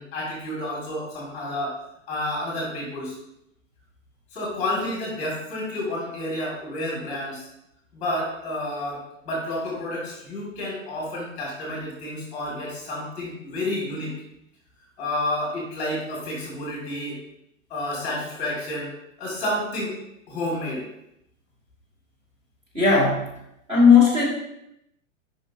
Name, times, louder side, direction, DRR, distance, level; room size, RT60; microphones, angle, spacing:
voice 1, 0.0-1.8 2.1-3.1 4.3-7.5 7.9-14.1 15.0-17.2 17.7-18.9 19.2-19.9 20.3-20.8, left 1 dB, 15° left, -4 dB, 2.1 m, -30 dB
voice 2, 22.7-23.3 23.7-24.2, left 5 dB, 15° right, -6 dB, 1.5 m, -16 dB
8.1 x 5.3 x 2.8 m, 0.82 s
hypercardioid pair, 180°, 39 cm